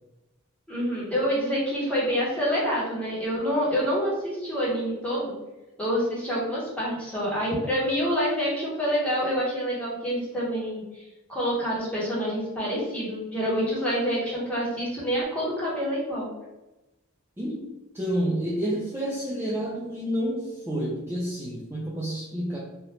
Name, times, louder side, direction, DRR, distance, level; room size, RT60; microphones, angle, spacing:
voice 1, 0.7-5.3 5.8-11.0 11.3-16.3, equal, 5° left, -7 dB, 1.1 m, -27 dB
voice 2, 17.9-22.6, equal, 10° right, -5 dB, 0.4 m, -29 dB
2.8 x 2.4 x 3.3 m, 1.0 s
head